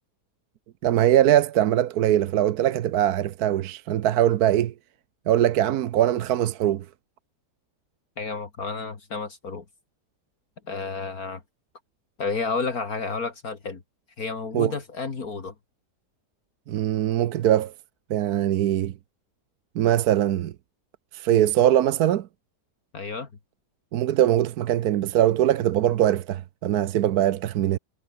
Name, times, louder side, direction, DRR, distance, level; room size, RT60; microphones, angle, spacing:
voice 1, 0.8-4.7 5.3-6.8 14.5-14.7 16.7-17.7 18.1-18.9 19.8-20.5 21.1-22.3 23.9-27.8, right 12 dB, 70° right, 1.2 m, -22 dB
voice 2, 8.2-9.6 10.7-11.4 12.2-13.8 14.2-15.5 22.9-23.3, left 4 dB, 60° left, 2.7 m, -31 dB
omnidirectional pair, 1.8 m